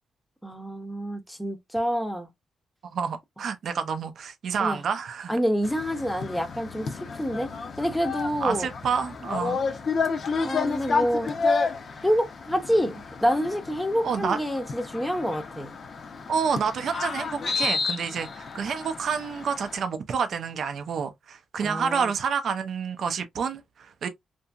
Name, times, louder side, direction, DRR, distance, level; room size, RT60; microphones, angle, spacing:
voice 1, 0.4-2.3 4.6-4.8 5.3-7.5 7.8-8.7 10.4-11.3 12.0-15.7 21.6-22.1, equal, 5° left, 0.6 m, -27 dB
voice 2, 2.9-5.3 8.4-9.6 14.0-14.4 16.3-24.1, right 6 dB, 65° right, 0.4 m, -28 dB
sound 1, 5.6-19.8, left 4 dB, 50° left, 0.5 m, -31 dB
2.8 x 2.6 x 2.3 m
cardioid pair, 125°, 0 cm